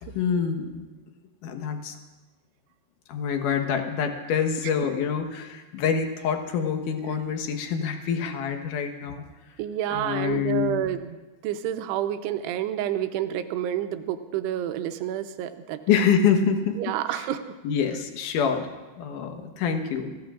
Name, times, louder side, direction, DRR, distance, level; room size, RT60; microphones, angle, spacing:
voice 1, 0.2-0.8 1.4-2.0 3.1-9.2 9.9-10.8 15.9-16.8 17.1-17.3 17.6-20.1, left 7 dB, 65° left, 5 dB, 2.3 m, -26 dB
voice 2, 9.6-11.2 11.4-15.8 16.8-17.4, right 11 dB, 80° right, 8 dB, 2.8 m, -29 dB
28.5 x 15.5 x 2.5 m, 1.1 s
omnidirectional pair, 4.9 m